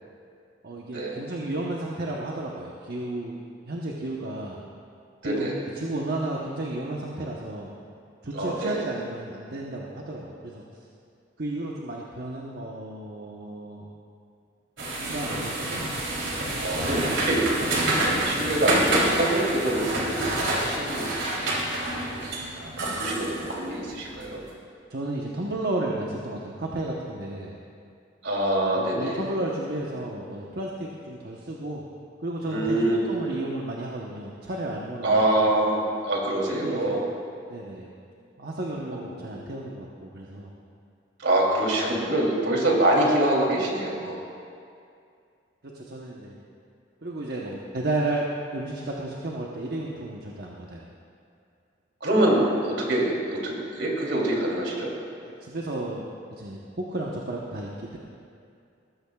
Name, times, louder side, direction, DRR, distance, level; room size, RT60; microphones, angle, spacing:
voice 1, 0.6-4.6 5.2-7.7 8.2-10.6 11.4-13.9 14.9-15.9 24.1-24.4 24.9-27.6 28.7-31.8 32.2-35.5 36.5-37.0 37.5-37.9 38.4-40.5 45.7-46.4 47.0-50.8 55.4-56.1 56.4-58.0, right 2 dB, 60° right, -2 dB, 1.0 m, -33 dB
voice 2, 5.2-5.6 8.3-8.7 16.6-17.6 18.0-21.5 22.0-22.2 22.6-24.4 28.2-29.3 32.4-33.2 35.0-37.0 38.9-39.4 41.2-44.2 52.0-54.9, right 1 dB, 75° right, -3 dB, 3.0 m, -25 dB
sound 1, 14.8-24.3, right 1 dB, 90° right, 3.4 m, -27 dB
19.5 x 14.0 x 2.4 m, 2.4 s
head